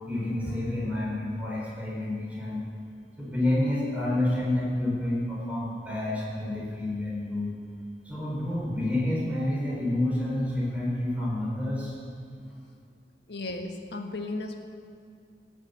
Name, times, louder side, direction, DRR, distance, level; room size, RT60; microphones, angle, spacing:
voice 1, 0.1-2.6 3.2-7.5 8.0-11.9, left 1 dB, 10° right, -6 dB, 4.6 m, -29 dB
voice 2, 13.3-14.7, left 2 dB, 75° left, 4 dB, 1.5 m, -35 dB
17.0 x 8.0 x 8.3 m, 2.3 s
head